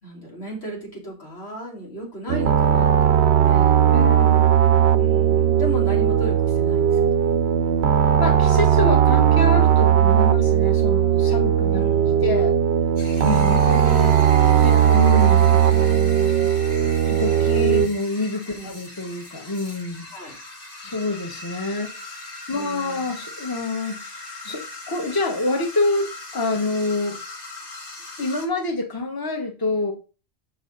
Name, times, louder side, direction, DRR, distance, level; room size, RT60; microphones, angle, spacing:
voice 1, 0.0-3.8 4.9-7.5 11.7-12.2 18.5-18.7 20.1-20.3 22.5-23.1, equal, 85° left, 3.4 m, -36 dB
sound 1, 2.3-17.9, right 9 dB, 90° right, 0.9 m, -18 dB
voice 2, 3.9-4.4 8.2-11.8 12.2-12.5 13.2-14.1 14.6-16.5 17.1-20.1 20.8-21.9 22.5-24.0 24.4-27.2 28.2-29.9, left 2 dB, 20° left, 1.2 m, -27 dB
sound 2, 13.0-28.5, left 2 dB, 60° left, 1.7 m, -39 dB
7.0 x 5.7 x 4.0 m
omnidirectional pair, 1.1 m